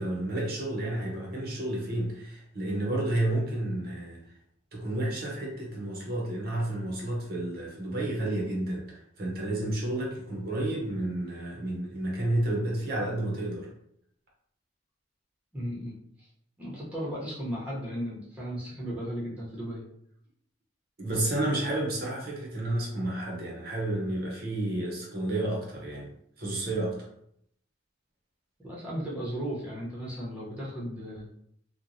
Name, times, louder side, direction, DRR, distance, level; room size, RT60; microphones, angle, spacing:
voice 1, 0.0-4.2 4.7-13.7 21.0-26.1 26.4-27.0, right 1 dB, 55° right, -3 dB, 0.7 m, -31 dB
voice 2, 15.5-16.0 16.6-19.8 28.6-31.2, equal, 10° right, -7 dB, 0.7 m, -35 dB
3.0 x 2.1 x 2.6 m, 0.72 s
head